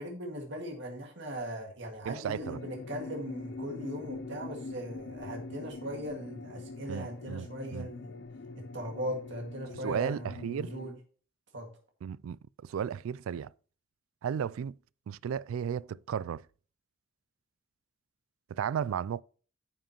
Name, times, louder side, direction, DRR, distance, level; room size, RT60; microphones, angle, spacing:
voice 1, 0.0-8.2 8.7-11.0 11.5-11.7, equal, 60° right, 2.0 m, -39 dB
voice 2, 2.1-2.6 6.9-7.5 7.7-7.9 9.8-10.7 12.0-13.5 14.2-14.7 15.1-16.4 18.5-19.2, right 8 dB, 85° right, 0.3 m, -34 dB
sound 1, 2.4-10.9, left 3 dB, 55° left, 0.6 m, -43 dB
10.0 x 7.4 x 2.9 m
head